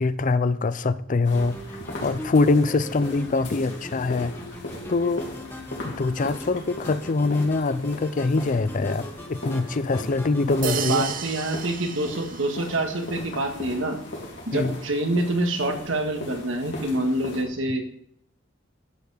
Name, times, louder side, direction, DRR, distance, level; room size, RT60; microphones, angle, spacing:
voice 1, 0.0-1.6 2.0-4.3 4.9-5.3 5.8-11.1 14.5-14.8, left 3 dB, 40° left, 0.5 m, -23 dB
sound 1, 1.2-17.4, left 1 dB, 70° left, 3.2 m, -39 dB
sound 2, 1.3-10.7, left 1 dB, 10° left, 1.4 m, -39 dB
sound 3, 10.6-12.9, right 9 dB, 45° right, 0.6 m, -34 dB
voice 2, 10.6-14.0 14.5-17.8, right 1 dB, 80° right, 1.9 m, -26 dB
12.5 x 7.1 x 5.0 m
head